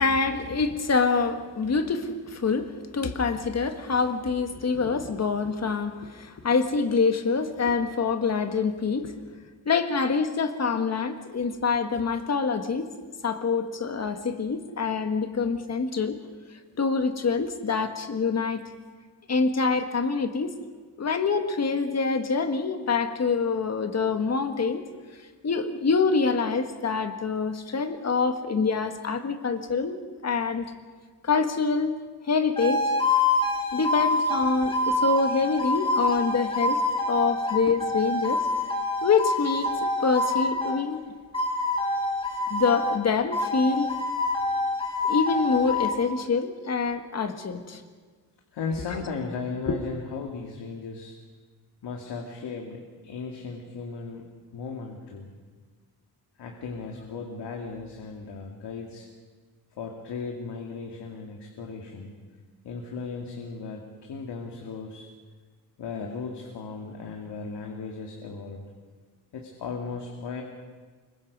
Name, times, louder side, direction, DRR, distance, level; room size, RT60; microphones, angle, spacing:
voice 1, 0.0-9.1 9.6-12.9 13.2-16.2 16.8-18.6 19.3-20.5 21.0-24.8 25.4-30.7 31.2-32.0 32.2-32.9 33.7-36.8 37.1-38.5 39.0-41.0 42.5-43.9 45.0-47.8 49.7-49.8, left 4 dB, 40° left, 7 dB, 1.5 m, -26 dB
sound 1, 32.6-40.9 41.3-43.0 43.3-45.9, left 2 dB, 15° left, 2.6 m, -26 dB
voice 2, 48.5-51.2 51.8-55.3 56.4-59.1 59.7-62.1 62.6-65.1 65.8-68.6 69.3-70.4, left 4 dB, 80° left, 1 dB, 2.4 m, -36 dB
25.0 x 23.0 x 5.4 m, 1.4 s
wide cardioid pair, 160°, 40 cm